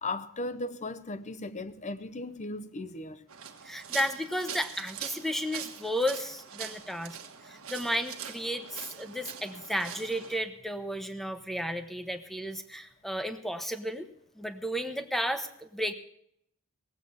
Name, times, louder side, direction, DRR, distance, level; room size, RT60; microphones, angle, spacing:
voice 1, 0.0-3.3, left 2 dB, 35° left, 0.7 m, -37 dB
sound 1, 3.3-10.4, right 8 dB, 65° right, 1.4 m, -43 dB
voice 2, 3.6-7.2 7.4-14.1 14.4-15.9, equal, ahead, 0.9 m, -33 dB
18.0 x 8.0 x 7.1 m
head